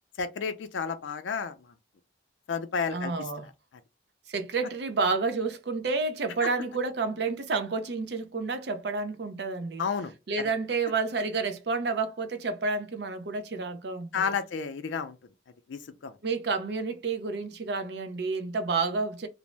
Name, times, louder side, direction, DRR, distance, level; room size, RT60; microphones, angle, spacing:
voice 1, 0.2-1.5 2.5-3.1 6.4-6.5 9.8-10.1 14.1-15.2 15.7-16.1, left 6 dB, 85° left, 0.4 m, -31 dB
voice 2, 2.9-3.5 4.3-9.8 10.3-14.3 16.2-19.3, right 4 dB, 65° right, 0.5 m, -30 dB
2.5 x 2.0 x 3.1 m
head